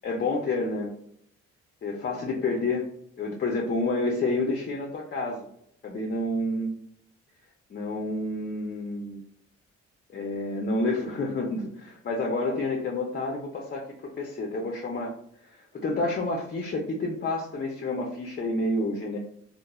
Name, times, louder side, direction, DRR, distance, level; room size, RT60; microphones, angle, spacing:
voice 1, 0.0-0.9 1.8-2.8 3.2-5.5 5.8-6.8 7.7-9.2 10.1-15.1 15.4-19.2, left 2 dB, 35° left, 1 dB, 0.4 m, -29 dB
2.9 x 2.0 x 2.2 m, 0.70 s
cardioid pair, 90°, 30 cm